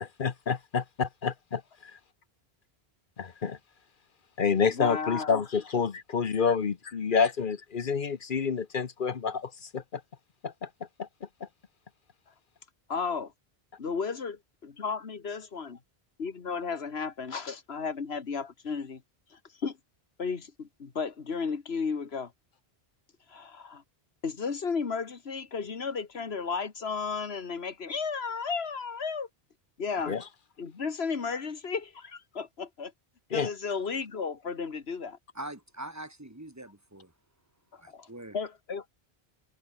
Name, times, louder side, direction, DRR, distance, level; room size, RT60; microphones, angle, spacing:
voice 1, 0.0-1.9 3.2-3.6 4.4-10.0 10.4-10.7 11.0-11.1 30.1-30.2 33.3-33.5, left 6 dB, 55° left, 1.1 m, -29 dB
voice 2, 4.7-5.4 5.9-6.0 6.5-6.6 12.9-13.3 13.8-14.4 14.6-15.8 16.2-19.0 19.3-19.8 20.2-22.3 23.3-23.8 24.2-29.3 29.8-30.2 30.6-32.9 33.3-35.2 37.7-38.1 38.3-38.9, left 5 dB, 80° left, 1.9 m, -34 dB
voice 3, 35.3-37.1 37.8-38.4, right 1 dB, 15° right, 2.0 m, -43 dB
omnidirectional pair, 1.1 m